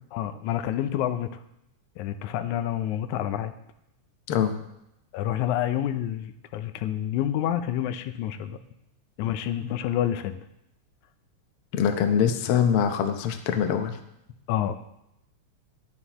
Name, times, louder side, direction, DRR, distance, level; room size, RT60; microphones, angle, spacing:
voice 1, 0.1-1.4 2.0-3.5 5.1-8.6 9.2-10.5 14.5-14.8, left 11 dB, 85° left, 10 dB, 2.0 m, -28 dB
voice 2, 11.7-14.0, left 8 dB, 65° left, 6 dB, 1.5 m, -23 dB
13.0 x 10.5 x 3.0 m, 0.82 s
omnidirectional pair, 3.3 m